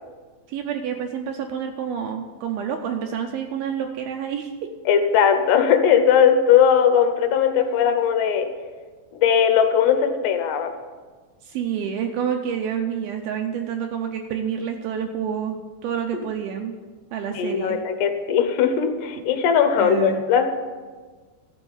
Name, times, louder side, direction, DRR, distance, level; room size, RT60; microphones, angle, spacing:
voice 1, 0.5-4.7 11.4-16.7 17.1-17.8 19.2-19.3 19.8-20.2, right 8 dB, 85° right, 4 dB, 2.1 m, -28 dB
voice 2, 4.9-8.5 9.2-10.7 16.1-16.2 17.3-20.5, left 7 dB, 75° left, 7 dB, 3.0 m, -19 dB
13.5 x 6.4 x 7.0 m, 1.4 s
omnidirectional pair, 5.2 m